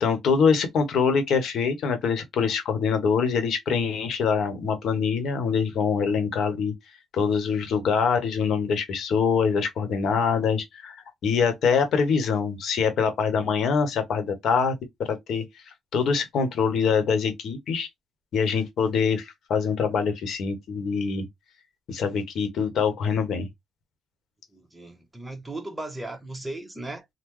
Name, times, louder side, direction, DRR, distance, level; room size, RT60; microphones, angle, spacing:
voice 1, 0.0-6.7 7.1-15.4 15.9-17.9 18.3-21.3 21.9-23.5, left 6 dB, 70° left, 1.0 m, -24 dB
voice 2, 24.5-27.0, right 2 dB, 10° right, 1.0 m, -36 dB
3.7 x 2.1 x 3.1 m
cardioid pair, 90°, 0 cm